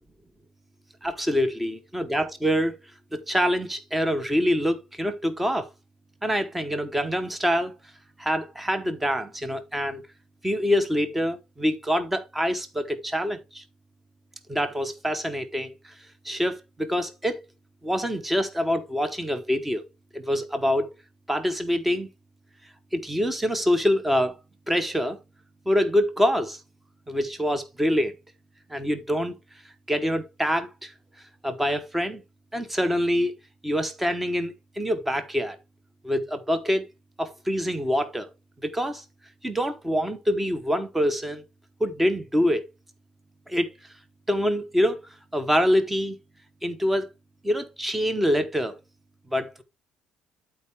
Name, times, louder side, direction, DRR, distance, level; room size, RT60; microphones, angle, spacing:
voice 1, 1.0-2.8 3.3-5.7 6.2-7.7 8.2-10.0 10.4-13.6 14.5-15.9 16.2-17.5 17.8-19.9 20.1-20.9 21.3-22.1 22.9-24.4 24.7-25.2 25.7-26.6 27.1-28.1 28.7-29.3 29.9-30.9 31.4-32.2 32.5-33.3 33.6-35.6 36.0-36.9 37.2-38.3 38.6-39.0 39.4-41.4 41.8-42.7 43.5-43.7 44.3-45.0 45.3-46.2 46.6-47.1 47.4-48.8 49.3-49.6, equal, 5° right, 1.0 m, -25 dB
11.5 x 4.6 x 3.4 m
cardioid pair, 175°, 2 cm